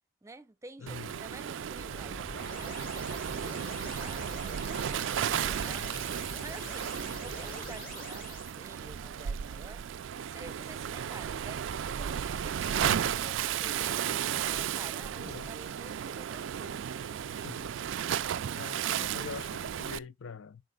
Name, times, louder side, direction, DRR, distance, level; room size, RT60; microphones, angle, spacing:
voice 1, 0.2-5.9 6.4-6.9 7.2-9.8 10.2-14.1 14.4-16.8, right 2 dB, 15° right, 0.6 m, -50 dB
voice 2, 0.8-1.2 12.6-13.1 15.2-15.5 17.3-17.8 18.5-20.6, left 6 dB, 80° left, 0.5 m, -44 dB
Waves surf, 0.9-20.0, right 9 dB, 70° right, 0.4 m, -34 dB
sound 1, 1.7-8.5, left 2 dB, 50° left, 2.7 m, -45 dB
10.5 x 5.1 x 2.3 m
head